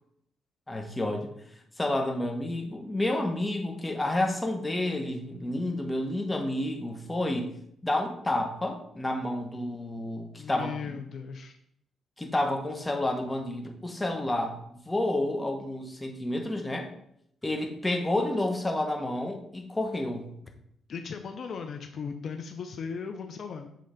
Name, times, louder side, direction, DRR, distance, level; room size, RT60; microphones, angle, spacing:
voice 1, 0.7-1.3 1.8-11.0 12.2-16.9 17.4-20.3, left 1 dB, 15° left, 3 dB, 1.3 m, -30 dB
voice 2, 10.4-11.6 20.9-23.7, left 6 dB, 60° left, 6 dB, 0.7 m, -37 dB
7.5 x 3.8 x 5.2 m, 0.72 s
cardioid pair, 95°, 0 cm